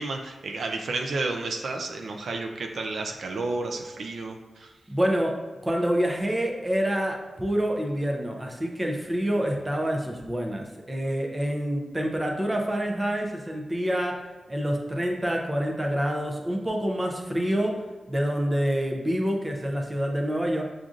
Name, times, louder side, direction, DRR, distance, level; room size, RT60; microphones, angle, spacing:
voice 1, 0.0-4.7, right 3 dB, 70° right, 3 dB, 0.4 m, -31 dB
voice 2, 4.9-5.4 5.6-20.6, equal, 15° right, 1 dB, 0.5 m, -27 dB
7.2 x 2.5 x 2.4 m, 1.3 s
wide cardioid pair, 175°, 0 cm